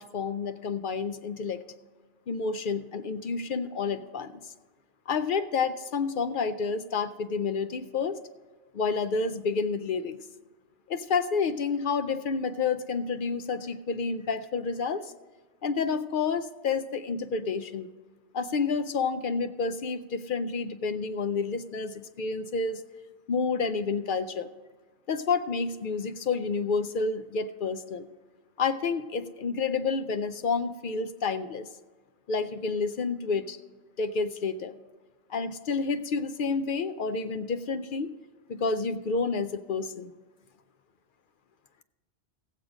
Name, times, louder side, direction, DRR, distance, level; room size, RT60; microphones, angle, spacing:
voice 1, 0.0-1.6 2.3-4.3 5.1-8.2 8.7-10.2 10.9-15.1 15.6-17.9 18.3-22.8 23.3-24.5 25.1-28.1 28.6-31.7 32.3-33.6 34.0-34.7 35.3-38.1 38.5-40.1, left 4 dB, 60° left, 9 dB, 0.6 m, -29 dB
15.5 x 7.5 x 5.0 m, 1.4 s
omnidirectional pair, 1.1 m